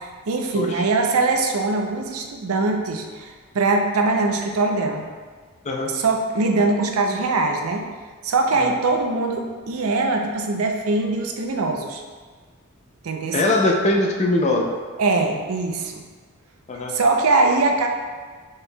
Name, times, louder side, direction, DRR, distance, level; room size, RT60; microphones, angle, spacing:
voice 1, 0.0-5.1 5.9-7.9 8.2-12.0 13.0-13.4 15.0-16.0 16.9-17.9, right 3 dB, 70° right, 3 dB, 0.5 m, -22 dB
voice 2, 13.3-14.7 16.7-16.9, left 2 dB, 30° left, 1 dB, 0.5 m, -21 dB
4.9 x 4.4 x 2.2 m, 1.5 s
head